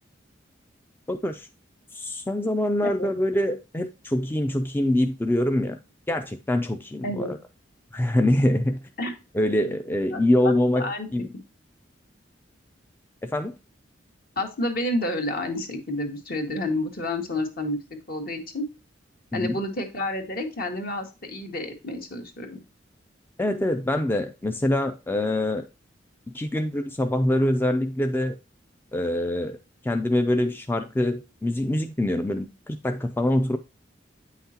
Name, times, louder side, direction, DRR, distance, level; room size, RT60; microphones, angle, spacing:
voice 1, 1.1-1.5 1.9-5.8 6.1-7.4 7.9-8.8 9.3-11.3 13.2-13.6 19.3-19.6 23.4-25.6 26.3-28.4 28.9-29.6 29.8-33.6, left 1 dB, 10° left, 0.4 m, -24 dB
voice 2, 10.1-11.1 14.3-17.8 18.1-18.6 19.3-22.6, left 1 dB, 55° left, 1.6 m, -30 dB
8.8 x 5.8 x 2.8 m
head